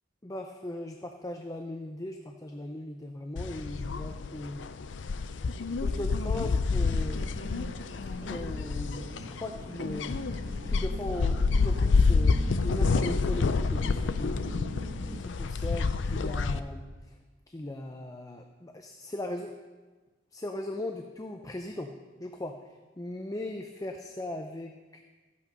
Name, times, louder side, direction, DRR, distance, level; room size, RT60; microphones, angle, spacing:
voice 1, 0.2-4.6 5.8-7.3 8.2-10.2 10.7-14.4 15.2-17.2 17.5-19.6 20.3-21.9 22.2-25.0, left 1 dB, 20° left, 4 dB, 0.6 m, -38 dB
sound 1, 3.4-16.6, left 4 dB, 70° left, 0.5 m, -28 dB
sound 2, 6.8-15.2, right 1 dB, 45° right, 0.8 m, -45 dB
14.0 x 8.5 x 5.3 m, 1.3 s
head